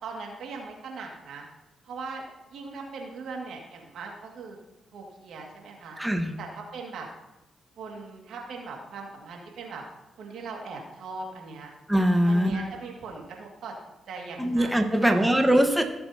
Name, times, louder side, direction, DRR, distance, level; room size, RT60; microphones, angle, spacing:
voice 1, 0.0-1.5 1.8-4.6 4.9-6.0 6.4-7.1 7.8-9.8 10.2-11.7 12.3-13.8 14.1-14.7 15.0-15.5, right 4 dB, 75° right, 0 dB, 2.0 m, -39 dB
voice 2, 6.0-6.3 11.9-12.6 14.4-15.8, equal, 5° right, 4 dB, 1.3 m, -22 dB
16.0 x 6.9 x 2.8 m, 1.0 s
supercardioid pair, 55°, 0 cm